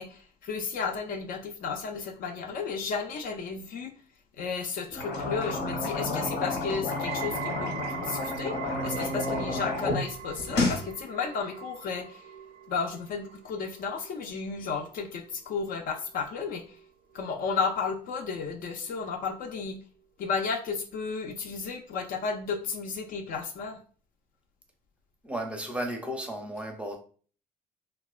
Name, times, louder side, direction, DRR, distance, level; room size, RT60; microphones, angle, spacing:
voice 1, 0.0-3.9 4.4-8.6 8.8-12.2 12.7-16.6 17.1-19.8 20.2-23.8, left 5 dB, 55° left, 0.4 m, -33 dB
sound 1, 4.9-10.0 10.3-10.8, left 2 dB, 90° left, 0.8 m, -30 dB
sound 2, 6.9-18.0 18.3-18.8 19.5-19.6, right 9 dB, 75° right, 0.5 m, -43 dB
voice 2, 25.2-27.0, right 1 dB, 5° right, 0.5 m, -34 dB
2.8 x 2.1 x 2.3 m
cardioid pair, 110°, 17 cm